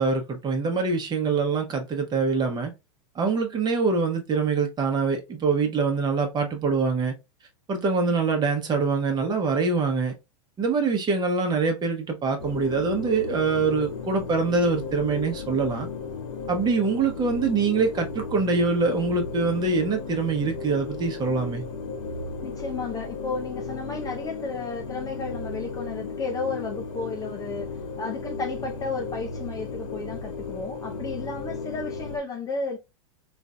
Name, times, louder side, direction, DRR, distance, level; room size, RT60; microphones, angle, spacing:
voice 1, 0.0-2.7 3.2-7.1 7.7-10.1 10.6-15.9 16.5-21.6, right 4 dB, 25° right, 1.0 m, -24 dB
sound 1, 12.4-32.2, left 4 dB, 70° left, 0.9 m, -35 dB
voice 2, 22.4-32.8, left 4 dB, 20° left, 0.5 m, -33 dB
3.8 x 2.6 x 2.2 m
hypercardioid pair, 110°, 17 cm